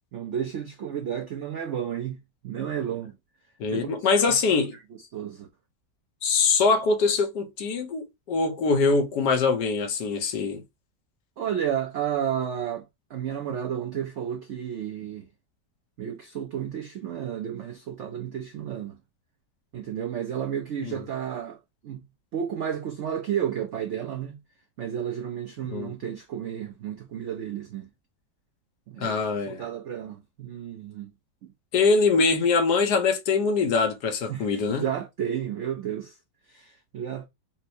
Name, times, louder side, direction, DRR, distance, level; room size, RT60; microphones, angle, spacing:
voice 1, 0.1-3.1 3.7-3.9 4.2-4.3 5.1-5.5 11.4-12.9 13.1-15.3 16.0-19.0 19.7-21.6 21.8-22.0 22.3-24.4 24.8-27.9 28.9-31.1 34.3-36.2 36.5-37.3, right 9 dB, 80° right, 0.6 m, -32 dB
voice 2, 3.6-4.7 6.2-10.6 20.8-21.0 25.6-25.9 29.0-29.6 31.7-34.9, left 4 dB, 75° left, 1.3 m, -23 dB
4.3 x 2.0 x 2.7 m
omnidirectional pair, 1.9 m